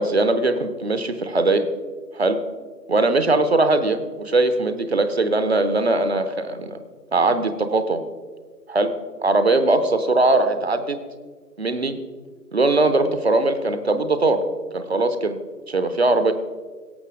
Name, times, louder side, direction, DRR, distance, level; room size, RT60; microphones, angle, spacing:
voice 1, 0.0-1.7 2.1-2.4 2.9-6.8 7.1-8.0 8.7-8.9 9.2-11.0 11.6-12.0 12.5-14.4 14.7-15.4 15.7-16.3, right 2 dB, 40° right, 10 dB, 0.6 m, -20 dB
17.5 x 6.7 x 3.6 m, 1.5 s
figure-of-eight pair, 140°, 49 cm